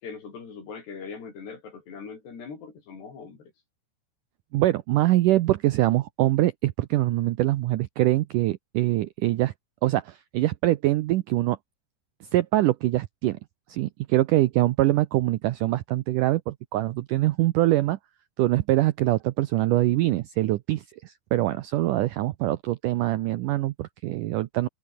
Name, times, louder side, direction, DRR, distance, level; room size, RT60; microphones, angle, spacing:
voice 1, 0.0-3.5, left 5 dB, 85° left, 8.0 m, -41 dB
voice 2, 4.5-9.5 9.8-11.6 12.3-13.4 13.7-18.0 18.4-24.7, right 16 dB, 80° right, 1.8 m, -24 dB
omnidirectional pair, 4.7 m